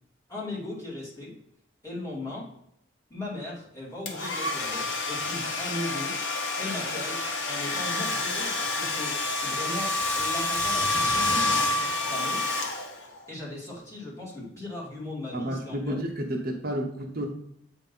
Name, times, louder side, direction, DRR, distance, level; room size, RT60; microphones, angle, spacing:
voice 1, 0.3-1.3 1.8-2.5 3.1-6.1 6.6-12.6 13.3-16.0, left 2 dB, 15° left, -7 dB, 2.5 m, -38 dB
Domestic sounds home sounds, 4.1-13.2, left 2 dB, 70° left, 1.1 m, -28 dB
voice 2, 15.3-17.3, equal, 50° right, 2 dB, 0.8 m, -31 dB
8.1 x 2.9 x 5.3 m, 0.76 s
head